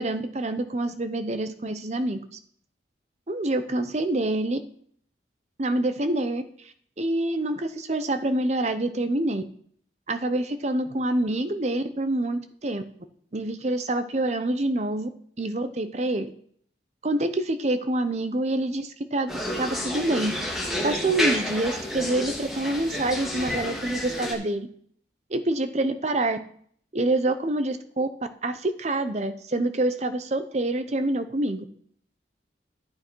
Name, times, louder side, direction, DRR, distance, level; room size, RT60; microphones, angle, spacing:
voice 1, 0.0-2.4 3.3-4.6 5.6-6.4 7.0-9.4 10.1-12.8 13.3-15.1 15.4-16.3 17.0-19.3 19.6-20.3 20.8-24.7 25.3-26.4 26.9-28.1 28.4-31.7, right 2 dB, 35° right, 9 dB, 0.7 m, -26 dB
sound 1, 19.3-24.3, equal, ahead, 2.5 m, -30 dB
11.5 x 8.4 x 4.6 m, 0.62 s
head